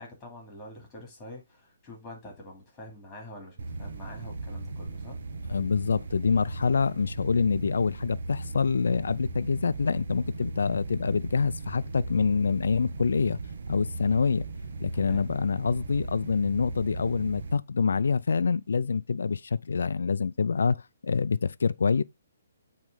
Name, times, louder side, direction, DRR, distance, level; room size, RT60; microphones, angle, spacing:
voice 1, 0.0-5.2 14.9-15.3, left 1 dB, 10° left, 2.7 m, -46 dB
sound 1, 3.6-17.5, right 3 dB, 60° right, 0.9 m, -37 dB
voice 2, 5.5-13.4 13.7-14.5 14.8-22.0, left 5 dB, 80° left, 0.4 m, -26 dB
9.0 x 3.2 x 3.8 m
hypercardioid pair, 170°, 0 cm